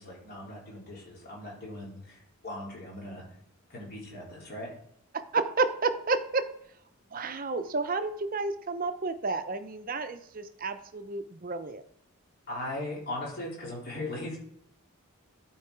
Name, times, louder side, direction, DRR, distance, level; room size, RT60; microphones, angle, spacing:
voice 1, 0.0-3.2 3.7-4.7 12.5-14.4, left 1 dB, 45° left, -4 dB, 3.7 m, -39 dB
voice 2, 5.1-6.5 7.1-11.8, right 3 dB, 40° right, 10 dB, 0.7 m, -31 dB
11.5 x 4.7 x 4.7 m, 0.71 s
head